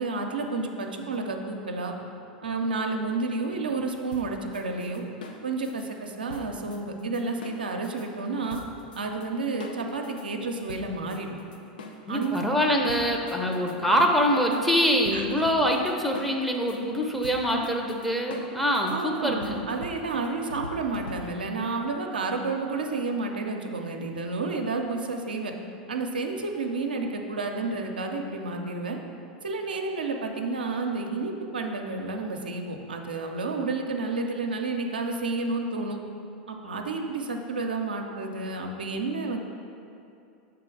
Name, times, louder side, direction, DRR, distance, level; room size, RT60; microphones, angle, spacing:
voice 1, 0.0-1.9 2.4-5.0 5.4-8.6 9.0-11.3 12.1-12.4 15.1-15.2 18.9-25.5 25.9-29.0 29.4-36.0 36.5-39.4, right 3 dB, 90° right, 2 dB, 0.5 m, -30 dB
sound 1, 4.1-8.1 8.5-9.3 9.6-12.4 12.9-21.5, left 2 dB, 80° left, 0.6 m, -44 dB
voice 2, 12.1-19.6, equal, ahead, 0 dB, 0.7 m, -24 dB
6.7 x 3.5 x 4.6 m, 2.6 s
hypercardioid pair, 95°, 5 cm